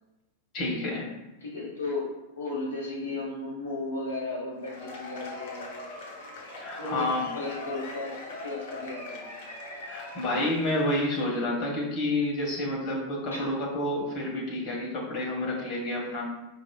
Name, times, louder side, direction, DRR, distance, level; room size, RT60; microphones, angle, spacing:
voice 1, 0.5-1.1 6.6-7.2 9.9-16.2, left 1 dB, 40° left, -3 dB, 1.3 m, -29 dB
voice 2, 1.4-2.1 2.4-5.8 6.8-7.1 7.3-9.3 13.3-13.5, left 2 dB, 70° left, -3 dB, 1.2 m, -35 dB
Cheering / Applause / Crowd, 4.6-11.4, left 2 dB, 55° left, 0.7 m, -41 dB
4.7 x 2.9 x 2.3 m, 1.0 s
figure-of-eight pair, 90°, 0 cm